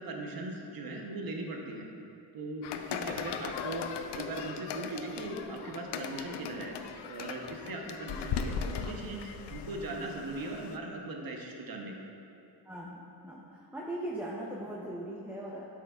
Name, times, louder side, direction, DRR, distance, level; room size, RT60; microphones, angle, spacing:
voice 1, 0.0-1.9 2.3-6.8 7.1-12.0, right 2 dB, 55° right, 1 dB, 0.9 m, -39 dB
sound 1, 2.6-10.8, left 7 dB, 75° left, 0.5 m, -38 dB
voice 2, 12.6-15.7, right 1 dB, 5° right, -4 dB, 0.6 m, -40 dB
8.6 x 6.5 x 2.3 m, 2.6 s
cardioid pair, 100°, 42 cm